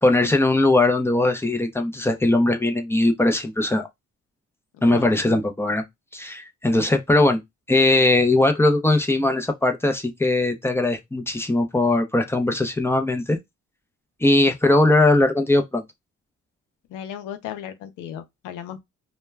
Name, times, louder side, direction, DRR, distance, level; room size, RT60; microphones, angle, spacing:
voice 1, 0.0-3.9 4.8-5.8 6.1-7.4 7.7-13.4 14.2-15.8, left 2 dB, 10° left, 0.5 m, -20 dB
voice 2, 4.8-5.4 16.9-18.8, left 10 dB, 90° left, 0.6 m, -36 dB
2.2 x 2.1 x 3.2 m
cardioid pair, 90°, 30 cm